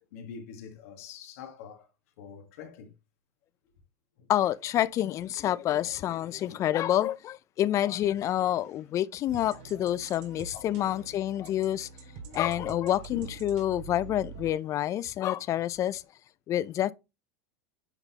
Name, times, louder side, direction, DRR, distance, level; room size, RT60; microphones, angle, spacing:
voice 1, 0.1-1.9 2.2-2.9 4.2-4.3 5.8-6.7 8.4-8.8 10.7-11.1 12.2-12.4 13.1-13.4 14.0-14.3, left 7 dB, 70° left, 1.6 m, -46 dB
voice 2, 4.3-11.9 12.3-16.0 16.5-16.9, left 12 dB, 40° left, 0.4 m, -28 dB
sound 1, 9.3-14.5, right 6 dB, 60° right, 2.3 m, -45 dB
9.8 x 3.9 x 2.9 m
hypercardioid pair, 95°, 8 cm